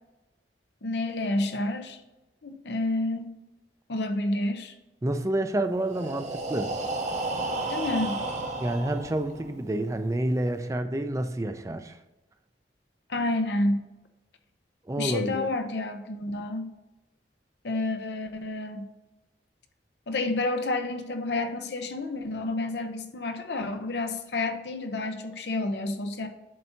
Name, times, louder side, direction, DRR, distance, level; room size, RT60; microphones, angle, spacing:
voice 1, 0.8-2.0 2.4-3.4 3.9-4.8 7.7-8.2 13.1-13.9 15.0-16.7 17.6-18.8 20.1-26.3, left 2 dB, 70° left, 6 dB, 0.7 m, -29 dB
voice 2, 5.0-6.7 8.6-12.0 14.9-15.5, right 1 dB, 20° right, 8 dB, 0.5 m, -29 dB
Breathing, 5.8-9.7, right 2 dB, 40° right, 0.8 m, -32 dB
7.6 x 2.7 x 5.7 m, 1.0 s
head